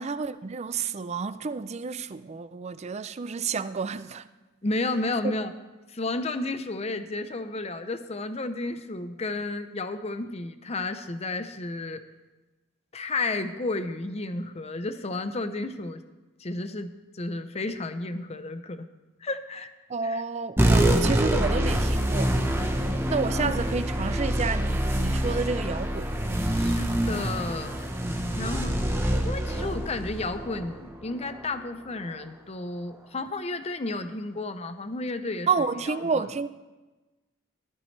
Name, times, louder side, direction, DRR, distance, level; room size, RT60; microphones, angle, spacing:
voice 1, 0.0-4.3 5.2-5.3 19.9-22.3 23.1-26.1 35.5-36.5, right 5 dB, 30° right, 0.4 m, -30 dB
voice 2, 4.6-5.5 5.9-12.0 12.9-16.0 16.4-18.9 19.2-19.7 20.0-20.2 23.3-23.6 26.5-27.8 28.3-28.9 29.2-35.5 35.9-36.3, left 2 dB, 30° left, 0.7 m, -32 dB
sound 1, 20.6-31.4, right 1 dB, 10° right, 0.9 m, -26 dB
15.0 x 13.5 x 3.3 m
head